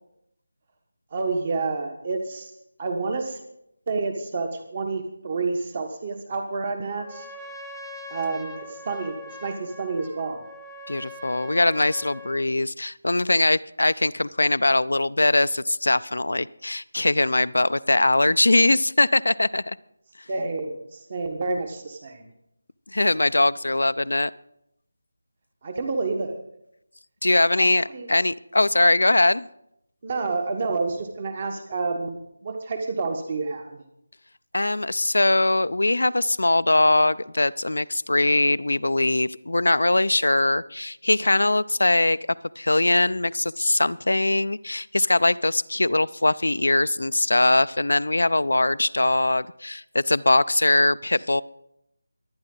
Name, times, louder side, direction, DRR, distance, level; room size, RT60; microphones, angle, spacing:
voice 1, 1.1-2.5 2.8-3.4 3.9-7.3 8.1-9.1 9.4-10.4 20.3-22.3 25.6-26.4 27.6-28.1 30.0-33.8, right 3 dB, 35° right, 5 dB, 1.3 m, -29 dB
Trumpet, 7.0-12.5, left 2 dB, 5° right, 1.1 m, -42 dB
voice 2, 10.9-19.6 22.9-24.3 27.2-29.5 34.5-42.2 42.6-51.4, left 2 dB, 80° left, 16 dB, 0.5 m, -21 dB
24.0 x 9.7 x 3.9 m, 0.79 s
figure-of-eight pair, 170°, 0 cm